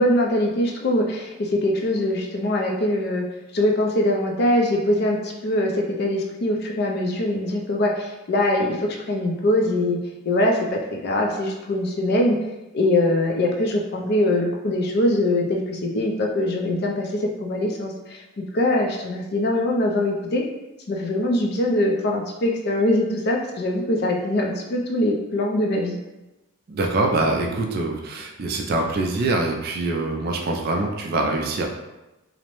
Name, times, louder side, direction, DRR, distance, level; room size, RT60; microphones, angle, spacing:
voice 1, 0.0-3.2 3.5-10.0 10.3-12.4 12.7-20.4 20.9-26.0, left 1 dB, 45° left, 1 dB, 0.3 m, -22 dB
voice 2, 26.7-31.7, right 2 dB, 45° right, 1 dB, 0.3 m, -24 dB
2.6 x 2.0 x 2.9 m, 1.0 s
head